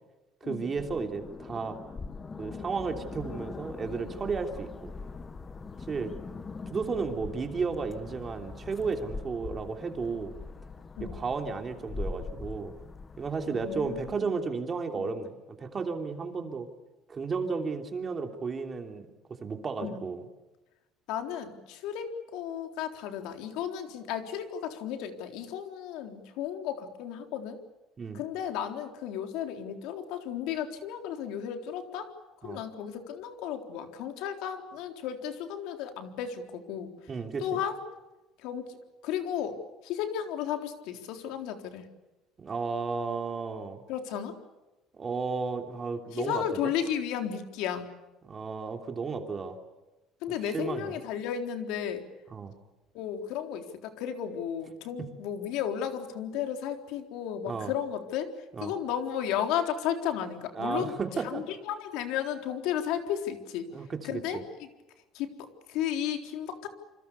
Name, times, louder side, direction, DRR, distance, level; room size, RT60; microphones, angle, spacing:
voice 1, 0.4-1.8 2.4-4.9 5.9-6.1 6.7-10.3 11.0-12.7 13.2-16.7 17.1-19.1 19.4-20.3 28.0-28.2 32.4-32.6 37.1-37.6 42.4-43.8 44.9-46.6 48.2-49.6 50.4-51.0 52.3-52.5 55.0-55.1 57.5-57.7 58.5-58.7 60.5-61.4 63.7-64.4, right 4 dB, 25° right, 5 dB, 3.1 m, -33 dB
sound 1, 0.8-14.2, left 4 dB, 20° left, 1.2 m, -42 dB
voice 2, 13.5-14.0 15.0-15.1 19.8-20.0 21.1-27.6 28.1-32.1 32.4-36.9 37.4-37.8 38.4-38.7 39.0-39.6 39.8-41.9 43.9-44.3 46.1-47.9 50.2-52.0 52.9-58.3 58.6-60.9 61.2-63.7 64.0-64.7 65.1-66.7, left 9 dB, 75° left, 5 dB, 3.8 m, -34 dB
28.0 x 26.5 x 6.9 m, 1.1 s
cardioid pair, 155°, 0 cm